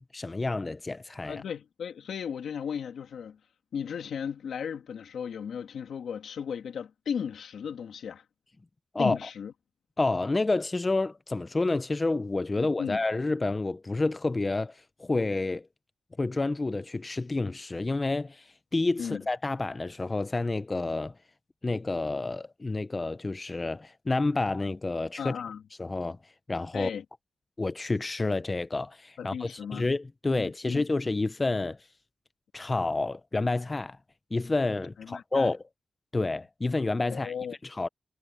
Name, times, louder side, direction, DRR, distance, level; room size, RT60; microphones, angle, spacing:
voice 1, 0.0-1.4 8.9-9.2 10.0-15.7 16.2-21.1 21.6-25.3 25.8-26.2 26.5-26.9 27.6-31.8 32.5-34.0 34.3-35.6 36.1-37.3 37.6-37.9, left 3 dB, 20° left, 0.4 m, -29 dB
voice 2, 1.3-3.4 3.7-8.2 9.0-9.5 12.6-13.0 19.0-19.2 25.2-25.6 26.7-27.0 29.2-29.8 30.3-30.8 35.0-35.5 37.1-37.6, left 7 dB, 90° left, 2.0 m, -36 dB
wide cardioid pair, 175°, 0 cm